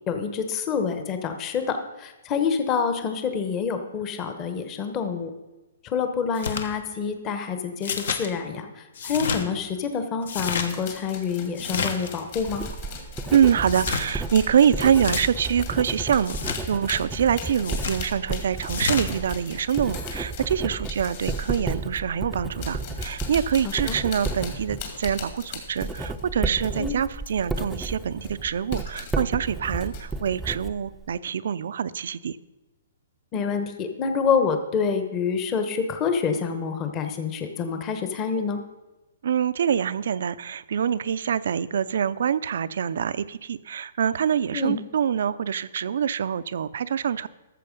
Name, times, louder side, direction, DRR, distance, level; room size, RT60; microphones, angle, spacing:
voice 1, 0.1-5.3 5.8-8.7 9.0-12.6 23.6-24.0 26.8-27.0 33.3-38.6 44.5-44.8, left 6 dB, 25° left, 7 dB, 1.0 m, -27 dB
sound 1, 6.4-6.7 7.8-8.3 9.0-9.4 10.2-10.7 11.6-12.1 13.7-14.1 14.8-15.2 16.3-16.6 17.6-18.0 18.7-19.1, left 5 dB, 65° left, 1.2 m, -29 dB
sound 2, 10.6-21.8 22.4-26.8 27.2-27.9 28.2-29.1 29.5-30.2, left 7 dB, 45° left, 2.2 m, -41 dB
Writing, 12.3-31.2, right 3 dB, 5° right, 0.6 m, -33 dB
voice 2, 13.3-32.4 39.2-47.3, right 8 dB, 65° right, 16 dB, 0.5 m, -25 dB
13.5 x 7.0 x 5.3 m, 1.1 s
hypercardioid pair, 155°, 0 cm